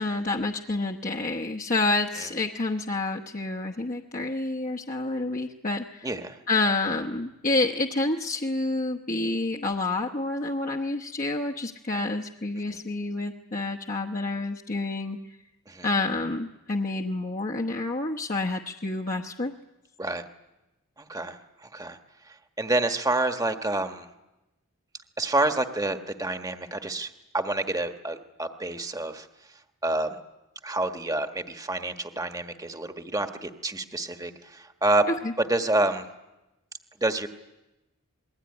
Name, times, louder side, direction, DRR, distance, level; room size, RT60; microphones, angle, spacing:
voice 1, 0.0-6.1 6.5-15.4 15.8-19.5 35.1-35.3, left 2 dB, 40° left, 0 dB, 1.1 m, -28 dB
voice 2, 6.0-6.4 12.7-12.8 15.7-15.9 20.0-20.2 21.0-22.0 22.3-24.1 25.2-29.3 29.8-30.2 30.6-35.1 35.4-36.1 37.0-37.3, right 2 dB, 15° right, 6 dB, 1.3 m, -28 dB
27.0 x 21.5 x 9.7 m, 1.0 s
head